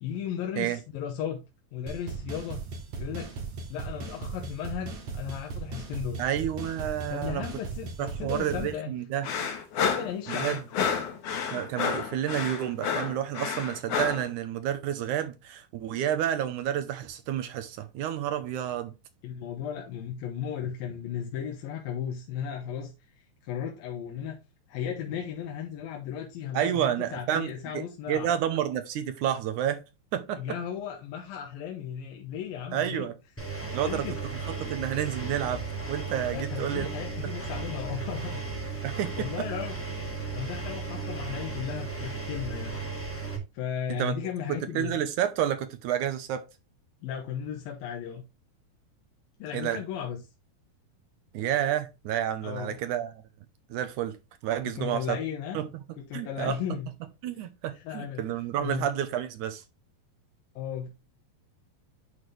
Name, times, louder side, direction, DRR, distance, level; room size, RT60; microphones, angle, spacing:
voice 1, 0.0-1.4 1.7-2.6 3.0-3.3 3.7-6.2 7.1-8.9 9.8-11.1 11.4-11.6 19.2-24.4 24.7-28.3 30.4-33.1 33.5-34.2 34.6-34.7 36.3-38.6 39.1-39.8 40.3-42.8 43.5-45.0 47.0-48.2 49.4-50.2 52.4-52.8 54.8-55.6 56.1-56.9 57.7-58.2 58.6-58.9 60.6-60.9, left 8 dB, 75° left, 2.9 m, -35 dB
sound 1, 1.9-8.7, right 4 dB, 55° right, 3.1 m, -37 dB
voice 2, 6.2-7.5 8.0-9.3 10.3-10.6 11.5-18.9 26.5-29.8 30.1-30.4 32.7-33.1 33.7-34.1 34.6-36.9 38.8-39.3 44.0-44.1 44.5-46.4 49.5-49.8 51.3-53.1 53.7-54.2 54.4-55.2 55.5-55.7 56.1-56.6 57.2-59.6, right 10 dB, 75° right, 2.0 m, -30 dB
sound 2, 9.2-14.3, left 6 dB, 60° left, 1.8 m, -30 dB
Engine, 33.4-43.4, right 4 dB, 5° left, 1.0 m, -35 dB
10.5 x 4.3 x 3.2 m
omnidirectional pair, 4.2 m